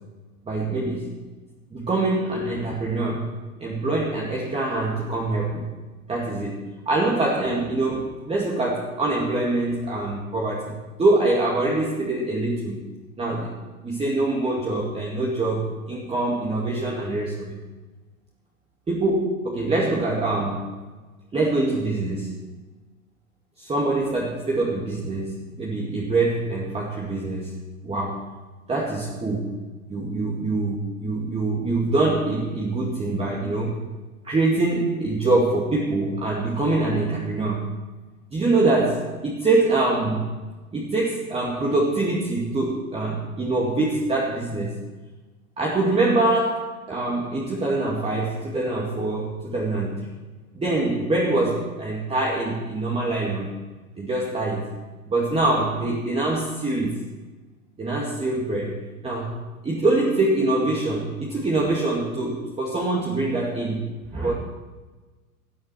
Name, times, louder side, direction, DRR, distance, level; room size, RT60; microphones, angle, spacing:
voice 1, 0.5-1.1 1.7-5.7 6.1-12.8 13.2-13.6 13.8-17.6 18.9-20.7 21.3-22.4 23.6-28.3 28.7-29.6 29.9-33.8 34.2-37.7 38.3-40.3 40.7-44.7 45.6-50.1 50.5-53.5 54.0-54.7 55.1-57.0 57.8-63.8 64.1-64.3, right 2 dB, 15° right, -3 dB, 2.5 m, -24 dB
19.5 x 12.0 x 4.6 m, 1.3 s
figure-of-eight pair, 95°, 43 cm